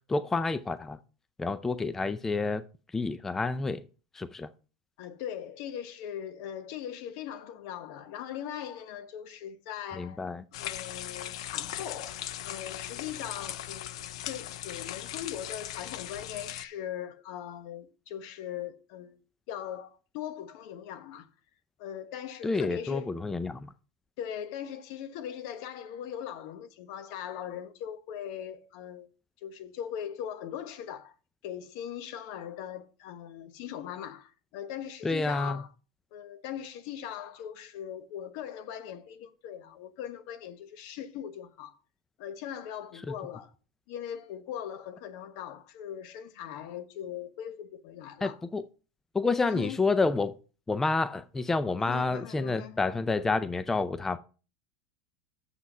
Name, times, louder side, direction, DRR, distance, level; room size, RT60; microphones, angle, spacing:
voice 1, 0.1-1.0 1.4-2.6 2.9-3.8 4.1-4.5 10.0-10.4 22.4-23.7 35.0-35.6 48.2-48.6 49.1-50.4 50.7-54.2, left 3 dB, 10° left, 0.4 m, -29 dB
voice 2, 5.0-10.2 10.5-12.2 12.4-21.3 21.8-23.1 24.2-29.1 29.4-31.1 31.4-35.7 36.1-41.7 42.2-43.5 43.9-48.4 49.4-49.8 51.8-52.8, left 9 dB, 60° left, 1.2 m, -40 dB
sound 1, 10.5-16.6, left 12 dB, 80° left, 0.6 m, -39 dB
7.4 x 6.2 x 5.4 m
supercardioid pair, 125°, 3 cm